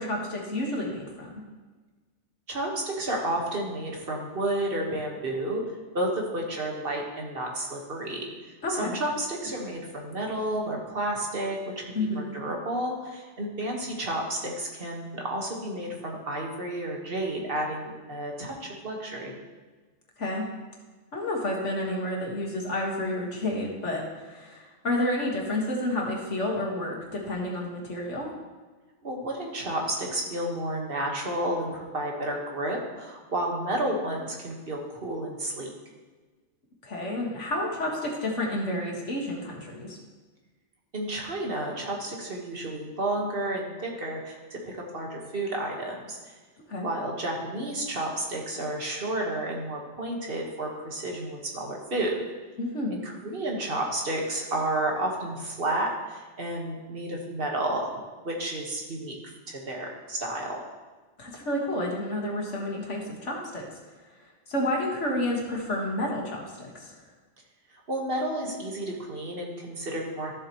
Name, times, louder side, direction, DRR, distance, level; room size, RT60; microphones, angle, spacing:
voice 1, 0.0-1.4 8.6-9.0 11.9-12.2 20.2-20.5 21.1-28.3 36.8-40.0 46.7-46.9 52.6-52.9 61.2-63.6 64.5-66.9, left 1 dB, 75° left, -1 dB, 2.1 m, -30 dB
voice 2, 2.5-5.6 5.9-8.3 8.8-11.6 11.9-19.4 29.0-35.7 40.9-46.3 46.8-52.2 52.9-60.6 67.9-70.3, right 1 dB, 50° right, -1 dB, 1.7 m, -31 dB
13.5 x 7.4 x 3.1 m, 1.3 s
omnidirectional pair, 1.2 m